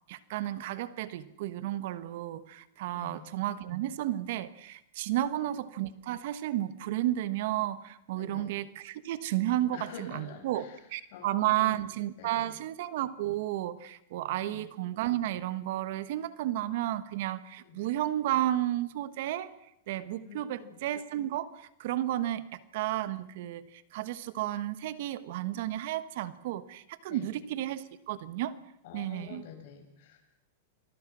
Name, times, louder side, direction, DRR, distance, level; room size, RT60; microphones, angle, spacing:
voice 1, 0.1-10.6 10.9-19.6 19.9-28.6 28.9-29.5, right 14 dB, 60° right, 14 dB, 1.3 m, -32 dB
voice 2, 2.9-3.3 5.1-5.5 8.1-8.5 9.7-10.9 11.1-11.9 12.2-12.6 14.4-14.7 17.6-17.8 20.2-20.8 27.1-27.4 28.8-30.3, left 8 dB, 60° left, 3 dB, 7.6 m, -48 dB
28.0 x 21.0 x 6.3 m, 0.77 s
supercardioid pair, 135°, 0 cm